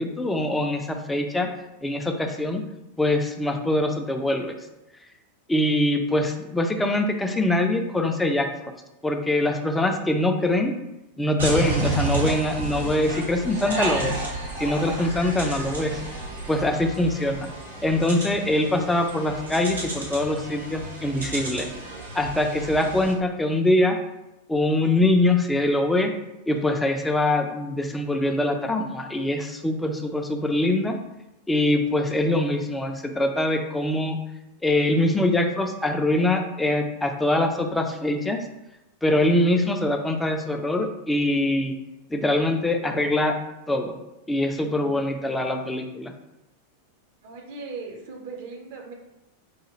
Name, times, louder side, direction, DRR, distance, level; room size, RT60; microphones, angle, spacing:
voice 1, 0.0-1.5 1.8-2.6 3.0-4.6 5.5-8.5 9.0-10.7 11.2-14.2 14.6-16.0 16.5-17.5 17.8-21.7 22.1-24.0 24.5-26.1 26.5-30.9 31.5-34.2 34.6-38.4 39.0-41.7 42.1-43.3 43.7-43.9 44.3-46.1, left 1 dB, 5° left, 4 dB, 0.4 m, -23 dB
sound 1, 11.4-23.1, right 2 dB, 75° right, 1.1 m, -31 dB
voice 2, 47.2-48.9, right 4 dB, 50° right, 1 dB, 0.8 m, -38 dB
4.8 x 2.3 x 3.1 m, 0.92 s
figure-of-eight pair, 90°, 0 cm